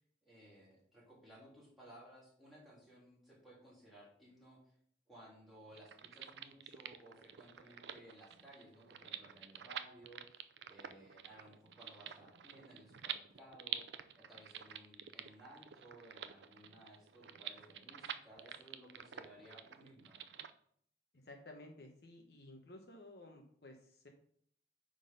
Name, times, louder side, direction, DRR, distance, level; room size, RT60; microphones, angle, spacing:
voice 1, 0.2-4.6 5.1-20.2, right 1 dB, ahead, -7 dB, 3.2 m, -59 dB
sound 1, 5.7-20.5, right 9 dB, 75° right, 0.5 m, -48 dB
voice 2, 21.2-24.1, left 1 dB, 60° left, 3 dB, 1.0 m, -55 dB
9.0 x 3.9 x 5.5 m, 0.63 s
head